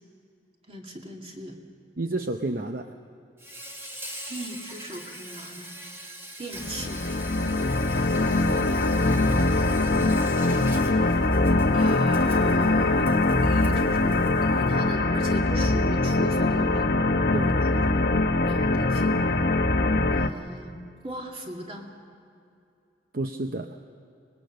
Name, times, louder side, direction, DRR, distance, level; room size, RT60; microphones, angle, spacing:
voice 1, 0.7-1.6 4.3-5.7 6.4-7.0 8.3-8.5 11.7-17.0 17.7-18.1 18.4-19.3 20.1-20.8 21.0-21.8, right 1 dB, 30° right, 1 dB, 2.4 m, -38 dB
voice 2, 2.0-3.0 17.3-17.7 23.1-23.8, right 2 dB, 55° right, 6 dB, 0.8 m, -30 dB
Insect, 3.4-14.8, equal, 15° right, 2.4 m, -43 dB
sound 1, 6.6-20.3, left 2 dB, 55° left, 0.9 m, -22 dB
24.5 x 21.0 x 6.6 m, 2.5 s
head